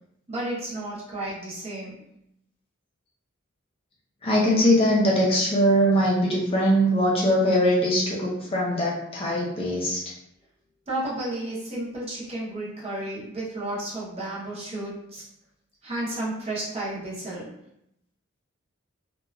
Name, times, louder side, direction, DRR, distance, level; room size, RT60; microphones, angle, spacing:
voice 1, 0.3-1.9 10.9-15.2 15.8-17.6, right 1 dB, 30° right, -6 dB, 0.7 m, -32 dB
voice 2, 4.2-10.0, equal, 25° left, -4 dB, 0.5 m, -21 dB
2.8 x 2.2 x 2.3 m, 0.78 s
head